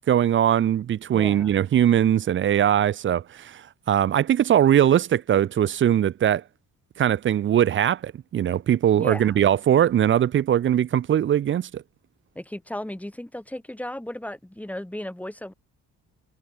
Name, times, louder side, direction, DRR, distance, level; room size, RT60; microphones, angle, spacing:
voice 1, 0.1-6.4 7.0-11.8, right 10 dB, 40° right, 0.5 m, -21 dB
voice 2, 1.1-1.6 8.9-9.4 12.3-15.5, left 1 dB, 5° left, 3.4 m, -35 dB
cardioid pair, 90°, 30 cm